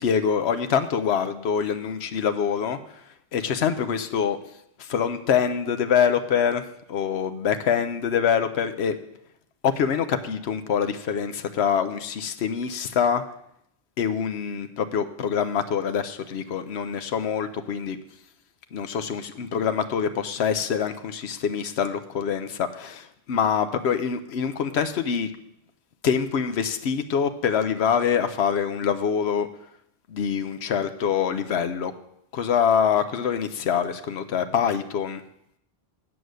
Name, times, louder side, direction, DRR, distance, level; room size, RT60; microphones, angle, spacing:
voice 1, 0.0-2.8 3.3-4.4 4.8-6.6 6.9-8.9 9.6-13.2 14.0-18.0 18.7-25.3 26.0-29.5 30.1-31.9 32.3-35.2, left 7 dB, 85° left, 9 dB, 1.0 m, -25 dB
9.1 x 7.9 x 6.3 m, 0.75 s
omnidirectional pair, 1.1 m